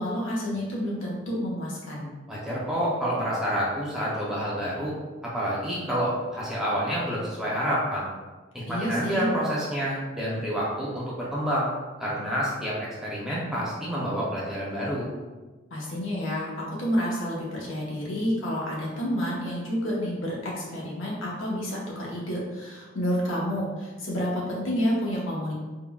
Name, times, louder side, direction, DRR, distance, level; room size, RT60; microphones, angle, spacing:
voice 1, 0.0-2.0 8.6-9.3 15.7-25.5, equal, 85° left, -4 dB, 0.9 m, -29 dB
voice 2, 2.3-4.9 5.3-8.1 8.5-11.7 12.0-15.1, equal, ahead, -7 dB, 0.6 m, -28 dB
3.7 x 2.2 x 2.2 m, 1.3 s
head